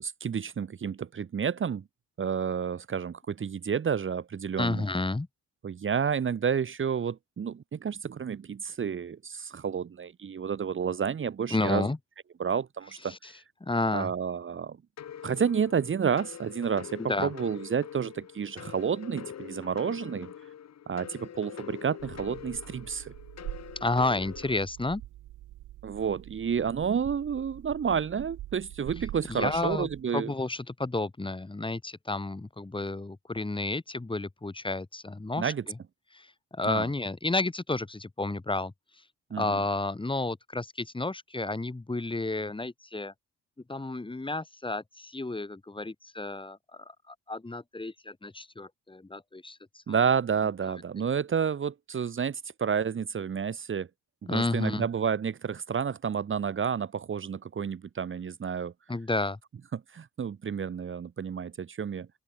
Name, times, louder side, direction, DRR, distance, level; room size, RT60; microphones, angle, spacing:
voice 1, 0.0-1.8 2.2-4.8 5.6-11.9 12.4-13.2 13.9-14.8 15.2-20.3 20.9-23.1 25.8-30.3 35.4-35.6 36.7-36.9 39.3-39.4 49.9-53.9 54.3-58.7 59.7-62.1, right 7 dB, 40° right, 1.8 m, -30 dB
voice 2, 4.6-5.3 11.5-12.0 13.1-13.3 13.6-14.1 17.0-17.3 23.8-25.0 29.0-35.8 36.1-39.0 39.4-43.1 43.7-50.0 54.3-54.9 58.9-59.4, left 2 dB, 15° left, 6.2 m, -31 dB
sound 1, 15.0-24.6, left 9 dB, 60° left, 3.2 m, -44 dB
sound 2, 22.0-30.0, right 15 dB, 85° right, 2.0 m, -45 dB
open air
cardioid pair, 90°, 30 cm